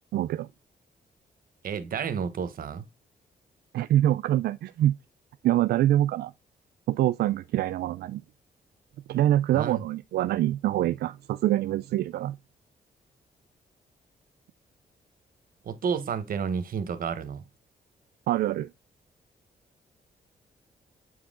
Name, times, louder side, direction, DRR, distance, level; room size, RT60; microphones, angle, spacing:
voice 1, 0.1-0.5 3.7-4.9 5.4-6.3 6.9-8.2 9.1-12.4 18.3-18.7, right 13 dB, 85° right, 0.4 m, -25 dB
voice 2, 1.6-2.9 9.5-9.9 15.6-17.4, right 6 dB, 65° right, 1.3 m, -31 dB
8.1 x 4.8 x 3.7 m
cardioid pair, 95°, 16 cm